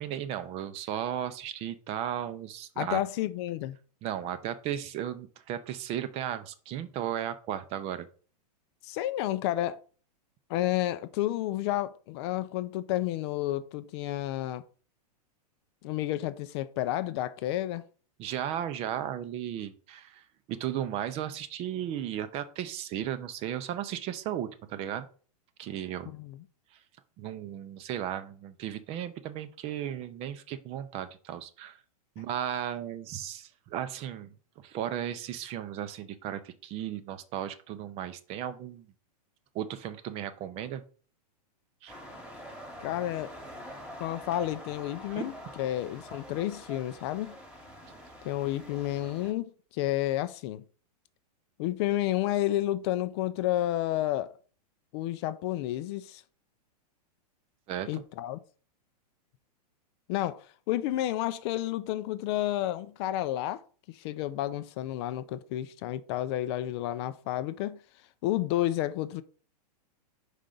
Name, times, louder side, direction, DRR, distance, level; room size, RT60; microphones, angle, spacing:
voice 1, 0.0-3.0 4.0-8.1 18.2-25.1 25.6-26.1 27.2-31.8 32.2-34.3 34.6-38.9 39.5-40.8 41.8-42.0 45.1-45.2 57.7-58.0, right 10 dB, 30° right, 0.5 m, -35 dB
voice 2, 2.8-3.8 8.8-9.8 10.5-14.6 15.8-17.8 26.1-26.4 42.8-43.3 44.0-47.3 48.2-50.6 51.6-54.4 54.9-56.2 57.9-58.4 60.1-63.6 63.9-67.8 68.2-69.2, left 14 dB, 40° left, 0.4 m, -31 dB
sound 1, 41.9-49.3, equal, 5° right, 1.3 m, -46 dB
5.4 x 5.0 x 3.8 m
hypercardioid pair, 140°, 21 cm